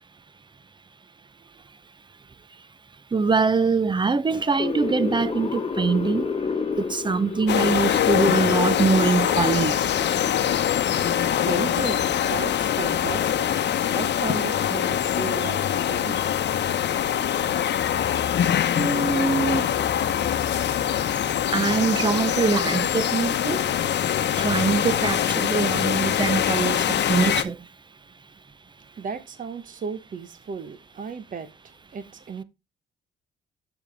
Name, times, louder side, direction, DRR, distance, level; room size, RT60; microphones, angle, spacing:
voice 1, 3.1-6.3 6.8-9.9 18.8-19.7 21.5-23.6 24.4-27.6, right 4 dB, 25° right, 0.7 m, -23 dB
sound 1, 4.3-11.6, left 5 dB, 30° left, 1.3 m, -32 dB
sound 2, 7.5-27.4, left 10 dB, 60° left, 1.0 m, -23 dB
voice 2, 11.4-13.5 13.8-16.3 16.9-17.0 29.0-32.4, right 6 dB, 40° right, 1.1 m, -35 dB
7.1 x 6.9 x 3.3 m
cardioid pair, 90°, 20 cm